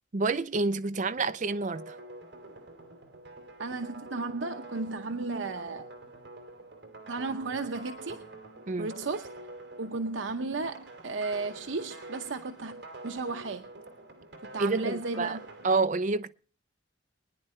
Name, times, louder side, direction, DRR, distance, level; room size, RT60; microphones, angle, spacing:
voice 1, 0.1-2.0 8.7-8.9 14.6-15.4 15.6-16.3, right 3 dB, 40° right, 0.6 m, -28 dB
sound 1, 1.1-15.8, right 2 dB, 65° right, 3.0 m, -47 dB
voice 2, 3.6-5.9 7.1-8.2 8.8-9.3 9.8-12.8 13.0-13.7 14.4-15.4, right 3 dB, 85° right, 0.8 m, -34 dB
24.5 x 10.0 x 3.2 m
head